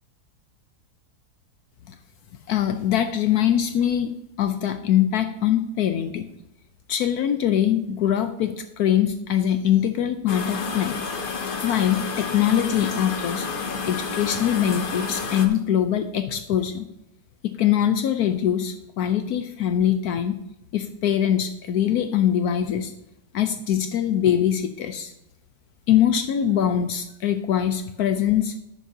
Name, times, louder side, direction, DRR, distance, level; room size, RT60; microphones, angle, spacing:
voice 1, 2.5-4.1 4.4-6.2 6.9-11.0 11.6-13.5 13.9-16.8 17.4-20.4 20.7-22.9 23.3-25.1 25.9-28.5, left 10 dB, 75° left, 9 dB, 1.1 m, -23 dB
sound 1, 10.3-15.5, left 5 dB, 45° left, 0.8 m, -30 dB
11.0 x 9.5 x 2.7 m, 0.89 s
omnidirectional pair, 1.7 m